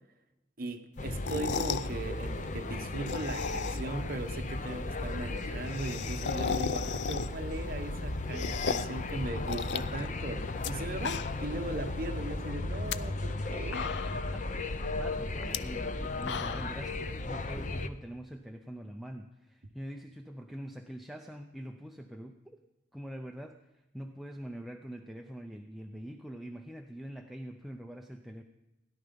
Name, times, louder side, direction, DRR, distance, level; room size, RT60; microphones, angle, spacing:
voice 1, 0.6-13.9, right 2 dB, 55° right, 1.0 m, -38 dB
sound 1, 1.0-17.9, left 2 dB, 45° left, 0.7 m, -36 dB
sound 2, 1.1-1.9 2.9-4.0 4.3-4.4 4.7-4.8 5.0-5.1 5.3-7.5 7.9-9.0 9.5-10.7 11.0-11.6 11.9-12.0 12.7-13.0 13.4-13.5 13.7-14.3 15.4-15.6 16.0-16.8, left 6 dB, 75° left, 0.5 m, -35 dB
voice 2, 14.1-22.6 22.9-28.4, equal, ahead, 0.5 m, -44 dB
17.0 x 11.0 x 5.2 m
head